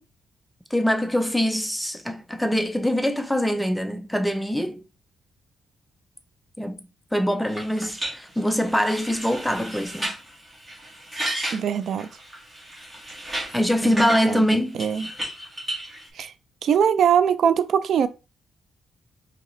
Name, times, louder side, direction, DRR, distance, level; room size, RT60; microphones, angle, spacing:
voice 1, 0.7-4.8 6.6-6.8 7.1-10.2 13.5-14.8, equal, ahead, 0.5 m, -23 dB
sound 1, 7.5-14.2 14.8-16.1, right 1 dB, 15° right, 1.6 m, -33 dB
voice 2, 11.5-12.1 13.8-15.1 16.1-16.3 16.6-18.1, right 8 dB, 60° right, 0.3 m, -22 dB
4.9 x 2.9 x 3.1 m
cardioid pair, 140°, 0 cm